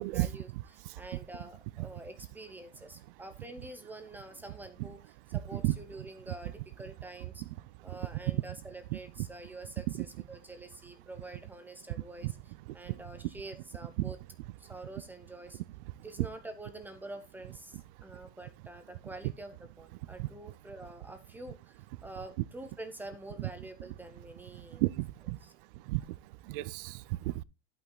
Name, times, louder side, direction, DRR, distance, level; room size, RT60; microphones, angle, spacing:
voice 1, 0.1-7.4 7.8-14.2 14.6-15.6 16.0-24.8 25.4-25.5, right 2 dB, 5° right, 0.6 m, -47 dB
voice 2, 24.8-25.4 25.9-26.0 26.5-27.0, right 19 dB, 60° right, 0.5 m, -31 dB
11.0 x 5.8 x 3.8 m
supercardioid pair, 160°, 31 cm